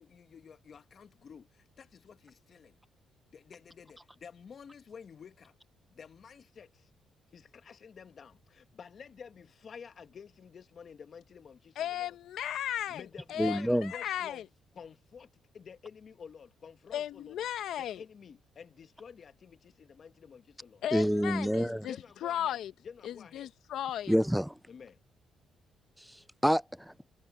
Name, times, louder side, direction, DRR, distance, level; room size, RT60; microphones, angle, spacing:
voice 1, 0.0-2.8 3.3-5.5 5.9-6.9 7.3-12.2 12.9-14.4 14.7-17.5 17.8-20.8 21.9-22.6 22.8-23.5 24.7-25.0, left 6 dB, 50° left, 1.3 m, -51 dB
voice 2, 11.8-13.0 13.3-14.4 16.9-18.0 20.8-22.0 22.2-22.7 23.0-24.1, left 11 dB, 80° left, 0.9 m, -35 dB
voice 3, 13.4-13.9 20.9-21.8 24.1-24.5 26.0-26.9, equal, ahead, 0.4 m, -28 dB
cardioid pair, 90°, 0 cm